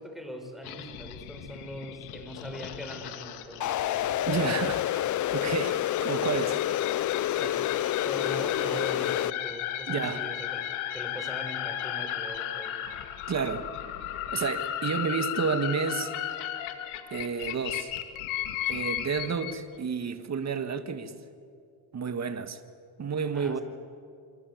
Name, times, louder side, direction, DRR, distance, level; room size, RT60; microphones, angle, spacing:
voice 1, 0.0-4.3 7.3-7.7 8.0-12.9 23.0-23.6, equal, ahead, 5.1 m, -41 dB
sound 1, 0.6-19.6, left 11 dB, 80° left, 2.4 m, -36 dB
sound 2, 3.6-9.3, left 13 dB, 40° left, 0.5 m, -28 dB
voice 2, 4.3-7.0 9.9-10.2 13.3-13.7 14.3-16.1 17.1-17.9 18.7-21.2 21.9-22.6 23.0-23.6, right 6 dB, 35° right, 1.9 m, -31 dB
25.5 x 25.0 x 8.2 m
cardioid pair, 105°, 48 cm